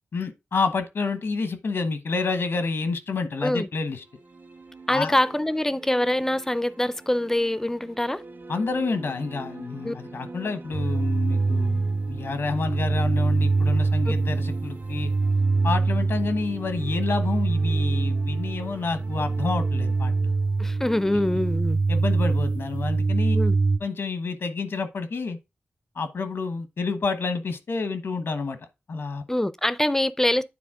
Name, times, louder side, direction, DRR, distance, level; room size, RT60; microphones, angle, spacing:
voice 1, 0.1-4.0 4.9-5.2 8.5-15.1 15.6-20.4 21.9-23.4 23.8-25.4 25.9-28.6 28.9-29.2, left 4 dB, 80° left, 1.1 m, -29 dB
sound 1, 3.8-21.8, right 3 dB, 65° right, 1.8 m, -44 dB
voice 2, 4.9-8.2 9.8-9.9 20.6-21.8 23.3-23.6 29.3-30.4, left 1 dB, 10° left, 0.4 m, -24 dB
sound 2, 10.7-23.8, right 3 dB, 35° right, 0.7 m, -24 dB
9.4 x 4.1 x 3.7 m
wide cardioid pair, 115°, 4 cm